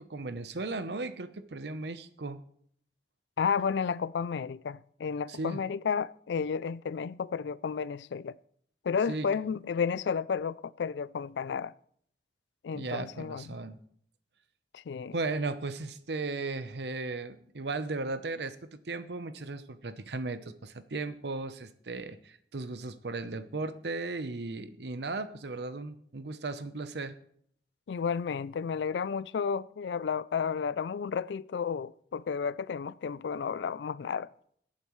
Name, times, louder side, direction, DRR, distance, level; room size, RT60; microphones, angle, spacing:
voice 1, 0.0-2.4 5.3-5.6 9.1-9.3 12.7-13.8 15.1-27.2, right 3 dB, 70° right, 0.8 m, -36 dB
voice 2, 3.4-8.4 8.8-11.7 12.6-13.4 14.7-15.2 27.9-34.3, left 6 dB, 75° left, 0.4 m, -32 dB
22.5 x 8.7 x 3.2 m
head